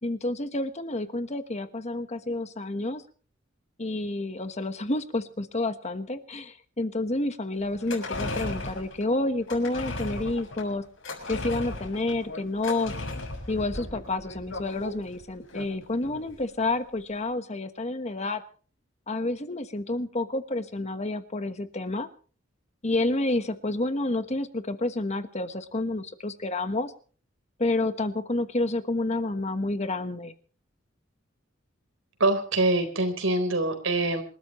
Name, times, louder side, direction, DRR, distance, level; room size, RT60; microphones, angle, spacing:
voice 1, 0.0-3.0 3.8-10.8 11.3-12.9 13.5-18.4 19.1-22.1 22.8-26.9 27.6-30.3, left 2 dB, 35° left, 9 dB, 1.3 m, -29 dB
sound 1, 7.7-16.4 16.7-16.8, left 2 dB, 75° left, 6.7 m, -36 dB
voice 2, 32.2-34.2, right 2 dB, 90° right, 7 dB, 4.2 m, -24 dB
27.0 x 13.5 x 3.2 m, 0.41 s
head